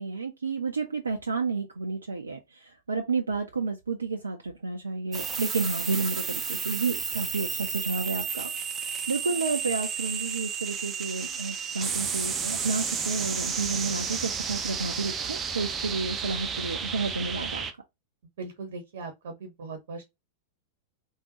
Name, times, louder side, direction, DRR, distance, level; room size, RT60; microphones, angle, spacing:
voice 1, 0.0-17.6, right 4 dB, 75° right, 0.4 m, -31 dB
sound 1, 5.1-17.7, right 6 dB, 20° right, 0.6 m, -32 dB
voice 2, 18.4-20.0, right 3 dB, 55° right, 0.9 m, -39 dB
3.6 x 2.3 x 2.8 m
figure-of-eight pair, 90°, 0 cm